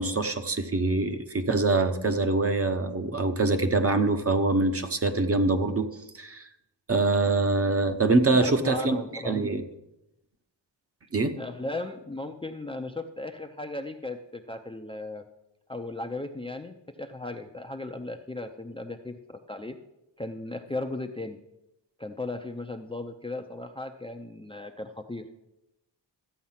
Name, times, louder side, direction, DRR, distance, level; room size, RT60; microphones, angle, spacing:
voice 1, 0.0-6.5 6.9-9.0 9.2-9.6 11.1-11.3, right 3 dB, 30° right, 8 dB, 0.8 m, -24 dB
voice 2, 8.3-9.4 11.4-15.2 15.7-19.8 20.2-21.4 22.0-25.4, left 2 dB, 10° left, 5 dB, 0.5 m, -36 dB
13.5 x 8.4 x 5.7 m, 0.89 s
wide cardioid pair, 150°, 45 cm